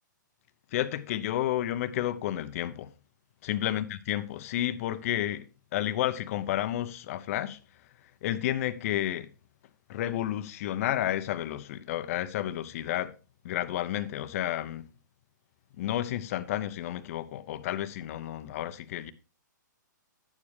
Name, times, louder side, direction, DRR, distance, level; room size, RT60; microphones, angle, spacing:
voice 1, 0.7-2.9 3.4-5.4 5.7-7.6 8.2-9.3 9.9-13.1 13.4-14.8 15.8-19.1, left 12 dB, 45° left, 0.8 m, -31 dB
10.5 x 9.7 x 3.3 m
hypercardioid pair, 140°, 11 cm